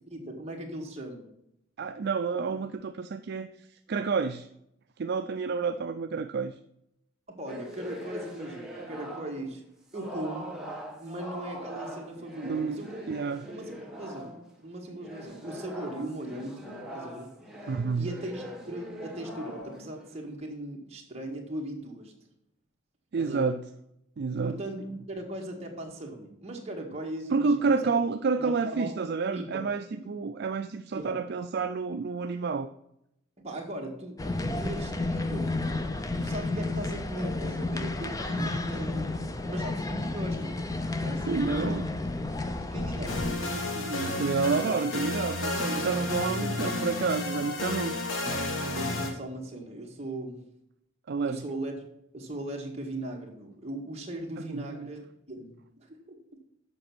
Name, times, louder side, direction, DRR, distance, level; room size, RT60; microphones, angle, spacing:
voice 1, 0.1-1.3 7.3-9.6 9.9-10.6 11.0-13.1 13.4-17.3 17.9-22.1 23.2-23.5 24.4-27.9 28.4-28.9 29.3-29.6 30.0-30.1 30.9-31.2 33.4-35.7 36.1-40.5 41.0-41.7 42.6-44.2 44.5-44.8 46.0-46.1 46.4-46.7 48.6-50.4 51.2-51.8 52.1-55.0 55.3-55.5 55.8-56.0, right 1 dB, 30° right, 0 dB, 1.7 m, -38 dB
voice 2, 1.8-4.5 5.0-6.5 12.5-12.8 13.1-13.4 17.7-18.1 23.1-23.6 24.2-24.6 27.3-32.7 38.2-38.6 41.1-41.9 44.2-48.0 51.1-51.4 54.4-54.9, right 4 dB, 55° right, 8 dB, 0.4 m, -29 dB
sound 1, 7.5-9.5 9.9-14.5 14.9-20.3, equal, 5° right, 1.3 m, -42 dB
sound 2, 34.2-43.4, left 2 dB, 15° left, 0.5 m, -31 dB
sound 3, 43.1-49.1, left 2 dB, 75° left, 1.5 m, -31 dB
7.7 x 5.9 x 6.1 m, 0.78 s
head